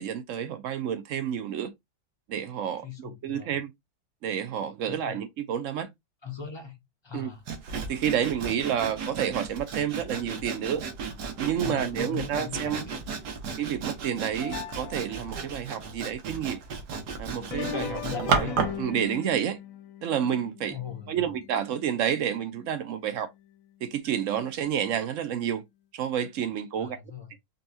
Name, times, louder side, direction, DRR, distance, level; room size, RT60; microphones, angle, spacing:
voice 1, 0.0-1.7 2.3-3.7 4.2-5.9 7.1-7.3 7.9-10.8 11.4-12.8 13.6-16.6 17.2-18.5 18.8-19.6 20.0-20.8 21.1-23.3 23.8-25.6 25.9-27.0 27.3-27.4, right 9 dB, 65° right, 0.9 m, -29 dB
voice 2, 2.8-3.5 4.9-5.2 6.2-6.8 7.0-7.4 11.5-12.8 13.1-13.2 17.4-18.6 20.7-21.3 26.8-27.3, left 7 dB, 30° left, 0.5 m, -40 dB
Sawing, 7.5-18.8, right 5 dB, 80° right, 1.6 m, -34 dB
sound 1, 14.4-15.5 17.4-21.8 22.2-22.3 23.2-23.3 24.0-24.1, left 8 dB, 65° left, 1.0 m, -39 dB
5.3 x 2.3 x 2.7 m
omnidirectional pair, 1.7 m